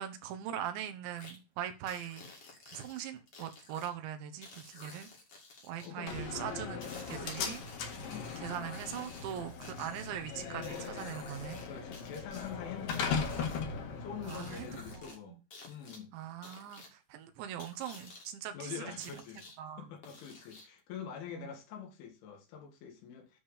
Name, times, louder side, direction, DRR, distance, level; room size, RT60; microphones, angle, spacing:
voice 1, 0.0-2.2 2.7-5.1 5.6-7.6 8.4-11.6 14.2-15.4 16.1-19.1 19.6-19.9 21.3-21.5, right 10 dB, 75° right, 3.2 m, -41 dB
sound 1, 1.2-1.4 1.9-3.9 4.4-5.9 6.8-10.1 10.6-11.7 11.9-13.7 14.2-15.2 15.5-16.0 16.4-16.9 17.6-18.3 19.0-19.6 20.0-20.8, left 3 dB, 40° left, 2.3 m, -52 dB
voice 2, 5.8-6.1 7.1-7.6 8.0-8.3 11.6-13.5 14.0-15.4 15.7-16.1 18.5-19.5 19.8-23.4, left 8 dB, 80° left, 4.4 m, -45 dB
Slam, 6.1-15.1, left 5 dB, 60° left, 3.0 m, -39 dB
10.5 x 3.6 x 7.2 m
omnidirectional pair, 5.5 m